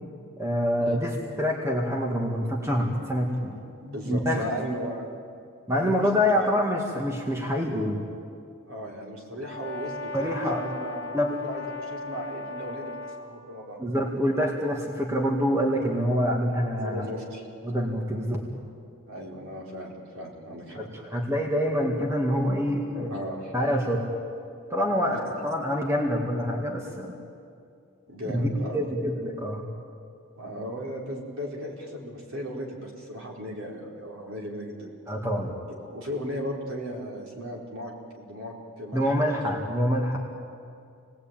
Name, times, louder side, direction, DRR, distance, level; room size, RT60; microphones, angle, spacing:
voice 1, 0.4-3.6 4.1-4.4 5.7-8.0 10.1-10.6 11.1-11.3 13.8-17.1 17.6-18.4 20.7-24.1 24.7-27.1 28.3-29.6 35.1-35.5 38.9-40.2, equal, 15° right, -1 dB, 2.1 m, -26 dB
voice 2, 3.8-5.1 5.7-6.4 8.6-13.8 16.8-17.5 19.1-20.8 23.1-23.5 25.1-25.3 28.1-28.8 30.3-34.9 35.8-39.2, equal, 60° right, -2 dB, 4.5 m, -36 dB
Brass instrument, 9.4-13.3, left 2 dB, 10° left, 2.9 m, -37 dB
28.0 x 19.5 x 9.0 m, 2.4 s
head